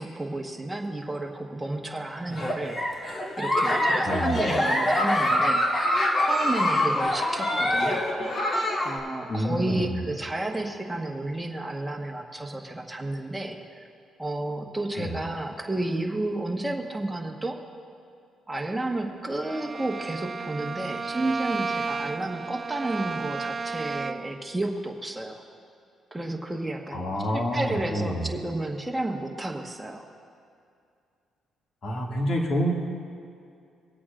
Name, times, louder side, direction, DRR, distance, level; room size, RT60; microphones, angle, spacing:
voice 1, 0.0-3.1 3.4-5.9 6.3-8.0 8.8-13.9 14.2-17.6 18.5-25.4 26.1-30.1, right 2 dB, 10° right, 1 dB, 1.3 m, -31 dB
Giggle, 2.3-9.0, left 1 dB, 35° left, 1.5 m, -25 dB
voice 2, 4.0-4.5 9.3-9.9 15.0-15.1 26.9-28.3 31.8-32.7, equal, 55° left, -2 dB, 2.1 m, -28 dB
Bowed string instrument, 19.4-24.4, right 4 dB, 35° right, 0.4 m, -33 dB
25.5 x 8.5 x 2.5 m, 2.4 s
cardioid pair, 90°, 0 cm